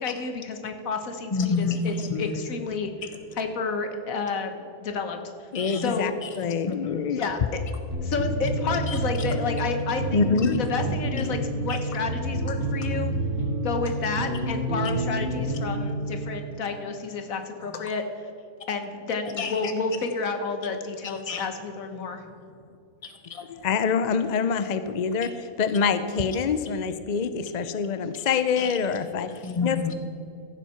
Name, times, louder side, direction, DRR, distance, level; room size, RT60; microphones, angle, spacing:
voice 1, 0.0-2.9 3.4-5.2 5.8-6.1 7.1-7.4 8.0-10.3 10.6-13.1 13.6-18.0 18.7-22.2, left 4 dB, 80° left, 6 dB, 1.6 m, -30 dB
voice 2, 1.3-2.3 3.0-3.2 5.5-5.8 6.2-7.1 8.9-9.3 11.7-11.8 12.6-12.7 17.6-17.9 19.4-19.7 21.0-21.5 21.9-22.7 23.0-23.5 28.1-28.2 28.6-28.8 29.3-29.9, left 4 dB, 30° left, 6 dB, 1.0 m, -31 dB
voice 3, 5.5-6.1 6.4-7.2 10.1-10.6 23.5-25.3 25.6-29.3 29.6-29.9, left 5 dB, 55° left, 11 dB, 0.5 m, -25 dB
sound 1, 7.9-16.3, right 1 dB, 65° right, 3.2 m, -29 dB
15.5 x 7.4 x 5.7 m, 2.7 s
omnidirectional pair, 1.4 m